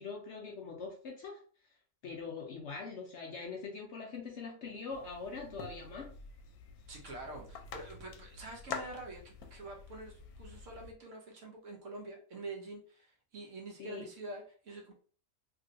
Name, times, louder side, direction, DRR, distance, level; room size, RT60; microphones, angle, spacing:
voice 1, 0.0-1.4 2.0-6.1 13.8-14.1, left 4 dB, 60° left, 0 dB, 0.8 m, -43 dB
sound 1, 4.9-10.9, left 5 dB, 90° left, 1.1 m, -47 dB
voice 2, 6.9-14.9, right 2 dB, 60° right, -1 dB, 1.1 m, -46 dB
3.2 x 2.8 x 2.5 m, 0.43 s
omnidirectional pair, 1.6 m